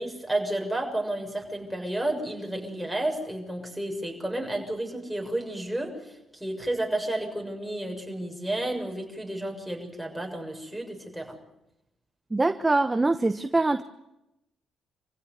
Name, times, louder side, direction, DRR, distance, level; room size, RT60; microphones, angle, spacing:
voice 1, 0.0-11.4, right 1 dB, ahead, 1 dB, 6.9 m, -31 dB
voice 2, 12.3-13.8, right 2 dB, 20° right, 9 dB, 1.0 m, -23 dB
26.5 x 16.0 x 9.5 m, 0.89 s
cardioid pair, 90°, 0 cm